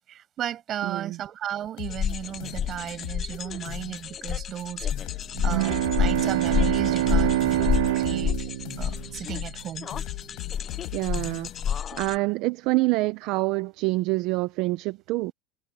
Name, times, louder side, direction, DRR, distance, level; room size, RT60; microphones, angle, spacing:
voice 1, 0.1-5.1 5.4-8.3 8.8-9.9, right 11 dB, 40° right, 6.9 m, -35 dB
voice 2, 0.8-1.2 10.9-11.5 11.9-15.3, right 21 dB, 60° right, 0.9 m, -26 dB
sound 1, 1.8-3.4 3.7-4.7 4.9-8.4 8.7-9.7 9.9-11.8, left 33 dB, 65° left, 5.3 m, -39 dB
sound 2, 1.8-12.2, left 8 dB, 30° left, 0.7 m, -30 dB
Bowed string instrument, 5.4-9.9, right 15 dB, 85° right, 2.9 m, -26 dB
supercardioid pair, 125°, 0 cm